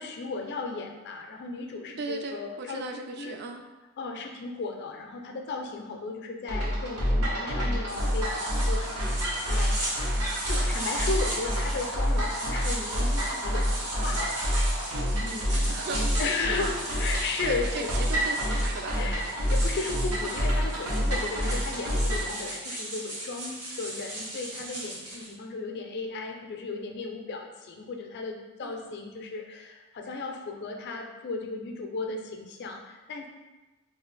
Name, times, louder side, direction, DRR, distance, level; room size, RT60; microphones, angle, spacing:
voice 1, 0.0-2.8 3.2-3.4 4.0-10.1 10.5-14.4 15.2-15.6 16.2-17.9 18.9-33.3, left 3 dB, 50° left, 3 dB, 0.4 m, -35 dB
voice 2, 2.0-3.6 15.7-16.0 16.4-16.8 17.4-19.0 28.6-28.8, right 3 dB, 45° right, 5 dB, 0.3 m, -37 dB
sound 1, 6.5-22.3, equal, 90° right, 0.9 m, -28 dB
sound 2, 7.9-25.3, right 1 dB, 70° right, 1.1 m, -37 dB
2.7 x 2.4 x 3.8 m, 1.1 s
head